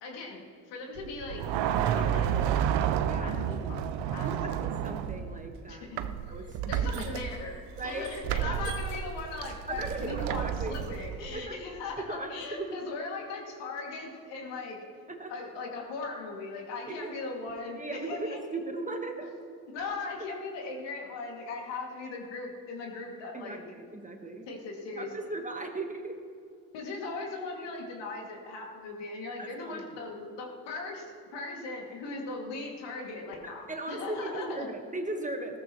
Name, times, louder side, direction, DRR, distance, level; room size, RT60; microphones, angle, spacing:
voice 1, 0.0-1.4 1.9-2.6 3.1-3.8 4.1-4.3 5.7-6.0 6.7-14.8 15.3-18.4 19.2-19.3 19.7-23.6 24.5-25.3 26.7-34.7, left 3 dB, 70° left, 0 dB, 2.6 m, -39 dB
sound 1, 1.0-5.5 6.0-11.5, right 9 dB, 70° right, 0.8 m, -31 dB
voice 2, 3.0-3.4 4.2-5.9 6.3-7.1 7.8-8.1 8.4-8.7 9.7-10.8 11.3-11.6 12.1-12.8 15.1-15.3 17.0-17.1 17.7-19.3 23.3-24.5 25.0-26.2 29.4-29.8 33.7-35.6, right 2 dB, 15° right, 4 dB, 1.5 m, -37 dB
15.5 x 13.5 x 3.1 m, 2.4 s
supercardioid pair, 75°, 44 cm